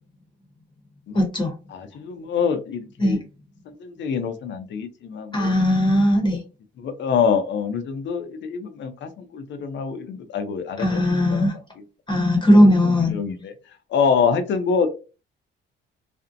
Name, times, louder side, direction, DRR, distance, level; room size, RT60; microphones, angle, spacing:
voice 1, 1.1-1.5 3.0-3.2 5.3-6.4 10.8-11.6 12.1-13.2, left 1 dB, 25° left, 2 dB, 0.8 m, -18 dB
voice 2, 1.7-3.2 3.7-5.5 6.8-11.5 12.5-13.5 13.9-14.9, left 6 dB, 65° left, 9 dB, 0.6 m, -25 dB
2.5 x 2.1 x 2.5 m, 0.32 s
cardioid pair, 90°, 20 cm